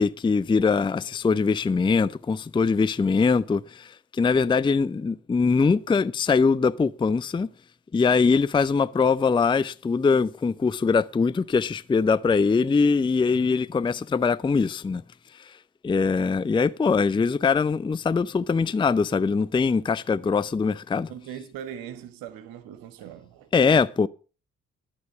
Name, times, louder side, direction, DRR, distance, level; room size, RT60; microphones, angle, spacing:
voice 1, 0.0-7.5 7.9-15.0 15.8-21.1 23.5-24.1, left 5 dB, 15° left, 0.5 m, -22 dB
voice 2, 13.3-13.6 21.1-23.5, right 9 dB, 70° right, 1.4 m, -40 dB
12.0 x 7.8 x 7.1 m
hypercardioid pair, 45°, 36 cm